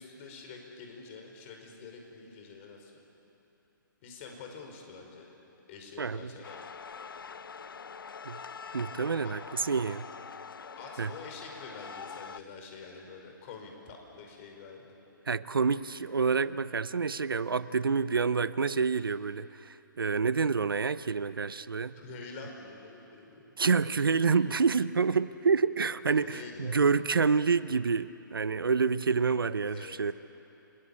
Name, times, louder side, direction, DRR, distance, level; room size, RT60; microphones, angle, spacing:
voice 1, 0.0-2.9 4.0-5.3 5.7-6.6 9.2-9.3 10.8-14.9 22.0-23.5 26.1-26.9 29.6-30.0, left 4 dB, 35° left, 2 dB, 5.3 m, -47 dB
voice 2, 6.0-6.3 8.3-8.4 8.7-10.1 11.0-11.1 15.3-22.0 23.6-30.1, right 5 dB, 85° right, 15 dB, 0.8 m, -28 dB
sound 1, 6.4-12.4, left 5 dB, 75° left, 0.7 m, -44 dB
29.0 x 20.5 x 8.6 m, 2.9 s
hypercardioid pair, 140°, 11 cm